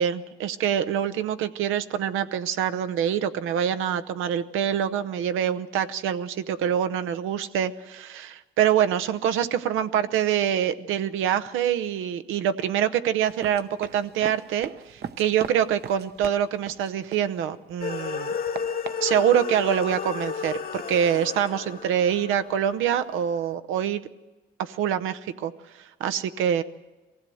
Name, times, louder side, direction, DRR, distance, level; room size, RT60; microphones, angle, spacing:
voice 1, 0.0-18.3 19.0-24.0 24.6-25.5 26.0-26.6, right 9 dB, 90° right, 10 dB, 0.8 m, -25 dB
Run, 13.3-17.7 18.1-20.0, right 8 dB, 55° right, 0.8 m, -40 dB
sound 1, 17.8-23.2, left 6 dB, 50° left, 1.2 m, -33 dB
22.5 x 16.0 x 7.7 m, 1.2 s
cardioid pair, 90°, 20 cm